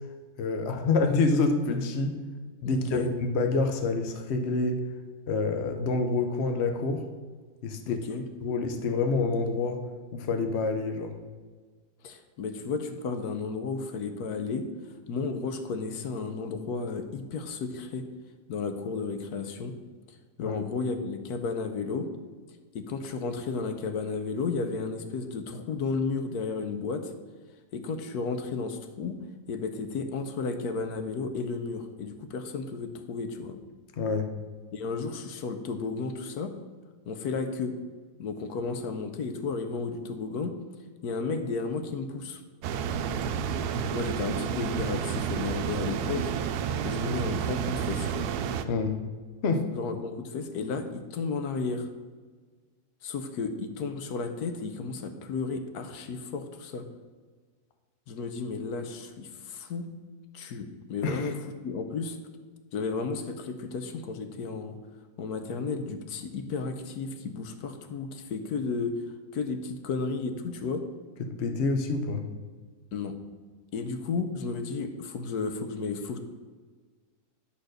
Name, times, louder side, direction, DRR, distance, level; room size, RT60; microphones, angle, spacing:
voice 1, 0.4-2.2 2.6-4.8 5.3-7.1 7.6-8.0 8.4-9.8 10.1-11.1 20.4-20.6 34.0-34.3 48.7-49.0 49.4-49.7 61.0-61.3 71.2-72.3, left 3 dB, 50° left, 6 dB, 1.0 m, -27 dB
voice 2, 2.6-3.1 7.9-8.3 12.0-14.7 15.1-18.1 18.5-19.7 20.4-22.1 22.7-27.1 27.7-29.2 29.5-33.6 34.7-36.6 37.1-37.7 38.2-40.6 41.0-42.4 43.9-46.3 46.8-48.3 49.7-51.9 53.0-56.9 58.1-59.9 60.3-61.3 61.6-62.2 62.7-64.8 65.2-69.0 69.3-70.9 72.9-73.2 73.7-76.2, left 4 dB, 85° left, 7 dB, 1.3 m, -33 dB
sound 1, 42.6-48.6, right 7 dB, 85° right, 1.1 m, -30 dB
10.5 x 4.3 x 6.5 m, 1.5 s
omnidirectional pair, 1.6 m